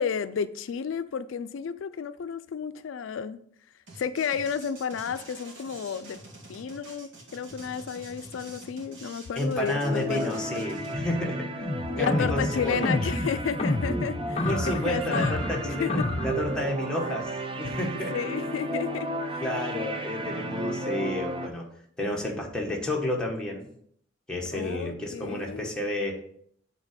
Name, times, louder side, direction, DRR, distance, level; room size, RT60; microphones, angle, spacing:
voice 1, 0.0-3.4 4.0-6.2 6.5-10.6 11.9-15.4 15.8-15.9 18.1-19.4 24.5-25.7, left 6 dB, 90° left, 0.4 m, -32 dB
sound 1, 3.9-11.0, right 2 dB, 85° right, 2.1 m, -47 dB
voice 2, 9.3-11.5 12.0-13.0 14.4-17.3 17.6-18.1 19.4-21.7 22.0-23.7 24.3-26.2, left 1 dB, 5° left, 1.4 m, -30 dB
sound 2, 9.8-21.5, right 1 dB, 30° right, 0.6 m, -34 dB
sound 3, 11.6-16.6, left 2 dB, 35° left, 0.7 m, -29 dB
7.4 x 3.9 x 5.1 m
head